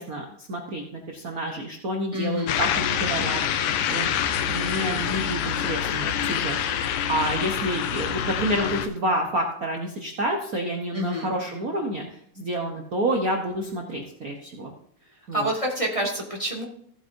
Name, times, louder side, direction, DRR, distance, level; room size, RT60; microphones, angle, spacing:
voice 1, 0.0-3.4 3.9-4.1 4.4-14.7 15.3-15.5, right 1 dB, 75° right, 1 dB, 0.8 m, -29 dB
voice 2, 2.1-2.6 10.9-11.3 15.3-16.7, equal, 15° left, -2 dB, 1.3 m, -27 dB
Car Passing by Background, 2.5-8.9, left 9 dB, 80° left, 2.1 m, -26 dB
15.0 x 8.2 x 2.7 m, 0.69 s
omnidirectional pair, 3.4 m